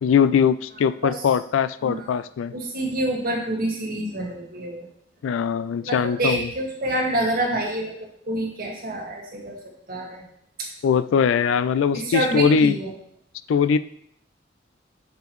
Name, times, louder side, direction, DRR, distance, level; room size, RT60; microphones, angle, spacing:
voice 1, 0.0-2.5 5.2-6.5 10.8-12.8 13.5-13.8, left 7 dB, 90° left, 15 dB, 0.3 m, -21 dB
voice 2, 2.5-4.9 5.8-7.9 8.3-9.6 9.9-10.2 11.9-12.9, right 1 dB, 50° right, -1 dB, 1.7 m, -27 dB
6.7 x 5.1 x 3.1 m, 0.68 s
head